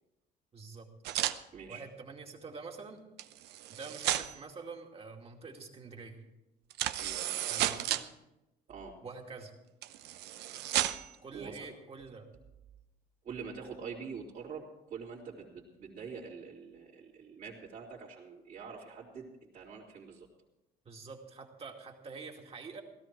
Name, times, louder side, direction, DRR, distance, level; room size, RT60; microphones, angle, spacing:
voice 1, 0.5-0.9 1.7-3.0 3.7-6.2 7.5-8.0 9.0-9.5 11.2-12.3 20.8-22.8, right 4 dB, 35° right, 1 dB, 2.4 m, -46 dB
sound 1, 1.0-1.4 3.2-4.4 6.7-8.0 9.8-11.1, right 13 dB, 80° right, 0.7 m, -33 dB
voice 2, 1.5-1.8 7.0-7.2 8.7-8.9 11.3-11.7 13.2-20.3, right 5 dB, 55° right, -7 dB, 3.1 m, -45 dB
17.0 x 13.5 x 4.6 m, 0.96 s
cardioid pair, 110°, 17 cm